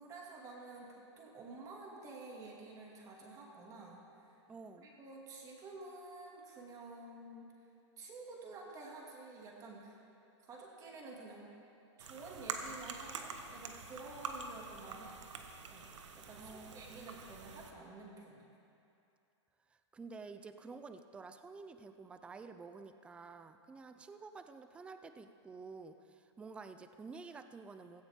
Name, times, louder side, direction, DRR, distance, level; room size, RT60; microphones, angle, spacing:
voice 1, 0.0-4.3 4.8-7.5 8.0-10.0 10.4-11.5 12.0-15.2 15.7-18.4, right 3 dB, 20° right, -2 dB, 2.3 m, -50 dB
voice 2, 4.5-4.9 16.4-17.2 19.7-28.0, right 4 dB, 5° right, 9 dB, 0.4 m, -51 dB
sound 1, 12.0-17.7, right 5 dB, 80° right, 1.4 m, -46 dB
16.0 x 15.5 x 3.7 m, 2.7 s
hypercardioid pair, 145°, 15 cm